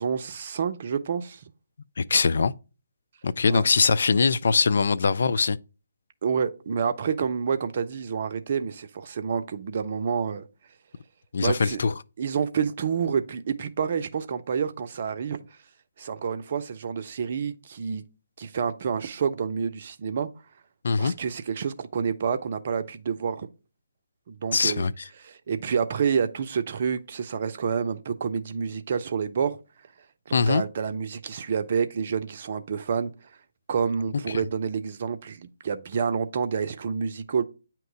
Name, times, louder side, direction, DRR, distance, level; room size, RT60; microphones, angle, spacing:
voice 1, 0.0-1.4 3.5-3.7 6.2-10.5 11.4-11.8 12.2-15.5 16.0-18.0 18.4-20.3 21.0-23.5 24.3-24.9 25.2-29.6 30.3-33.1 33.7-37.4, right 6 dB, 40° right, 0.6 m, -28 dB
voice 2, 2.0-2.5 3.2-5.6 11.3-11.9 20.8-21.1 24.5-24.9 30.3-30.6, left 4 dB, 55° left, 0.3 m, -22 dB
8.9 x 3.0 x 3.6 m
figure-of-eight pair, 140°, 0 cm